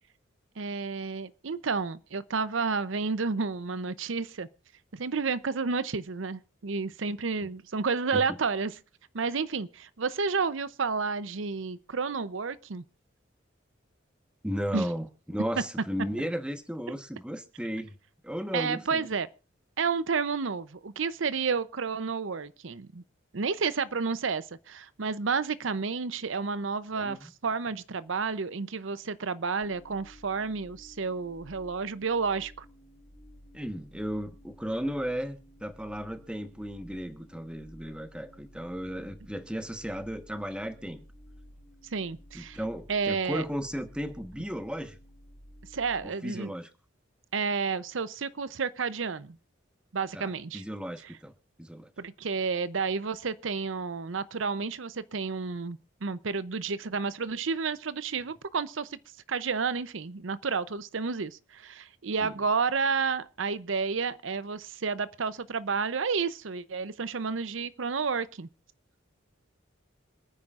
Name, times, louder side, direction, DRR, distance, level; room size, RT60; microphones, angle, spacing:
voice 1, 0.6-4.5 4.9-8.7 9.1-12.8 14.7-14.9 18.5-19.3 19.8-23.0 23.3-32.6 41.9-42.6 42.9-43.4 45.7-46.5 47.3-49.4 49.9-50.6 52.0-59.0 59.3-68.5, right 5 dB, 80° right, 0.7 m, -31 dB
voice 2, 14.4-18.0 18.2-19.1 27.0-27.3 33.5-41.0 42.3-45.0 46.0-46.7 50.1-51.3 51.6-51.9 62.2-62.4, equal, 5° right, 1.2 m, -35 dB
sound 1, 29.6-46.1, equal, 25° left, 2.7 m, -53 dB
27.0 x 9.7 x 2.5 m
head